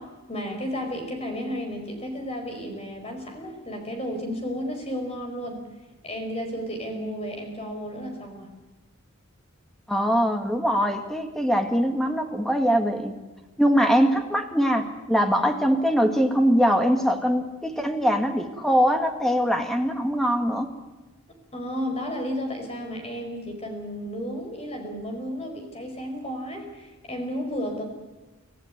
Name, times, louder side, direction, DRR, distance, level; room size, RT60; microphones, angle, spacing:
voice 1, 0.0-5.6 6.0-8.5 21.5-27.8, equal, 30° left, 4 dB, 4.8 m, -33 dB
voice 2, 9.9-13.2 13.6-20.7, equal, ahead, 5 dB, 1.9 m, -22 dB
25.0 x 15.5 x 9.4 m, 1.2 s
head